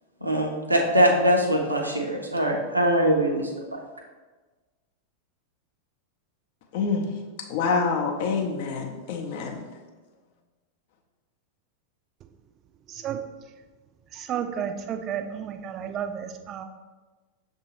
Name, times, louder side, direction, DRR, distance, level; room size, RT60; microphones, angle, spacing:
voice 1, 0.2-3.8, right 1 dB, 85° right, 0 dB, 0.7 m, -22 dB
voice 2, 6.7-7.1 7.5-9.6, left 4 dB, 50° left, 2 dB, 0.6 m, -26 dB
voice 3, 12.9-13.2 14.1-16.6, right 8 dB, 35° right, 7 dB, 0.4 m, -32 dB
6.6 x 2.6 x 3.0 m, 1.3 s
figure-of-eight pair, 90°, 0 cm